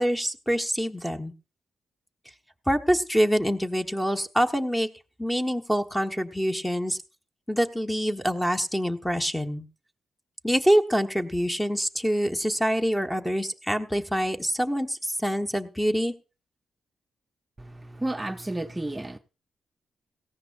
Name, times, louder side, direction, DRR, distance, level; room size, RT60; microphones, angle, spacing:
voice 1, 0.0-1.3 2.7-4.9 5.2-7.0 7.5-9.7 10.4-16.1, equal, 5° left, 1.3 m, -25 dB
voice 2, 17.6-19.2, right 1 dB, 20° right, 0.7 m, -32 dB
17.5 x 14.5 x 2.5 m
supercardioid pair, 55°, 0 cm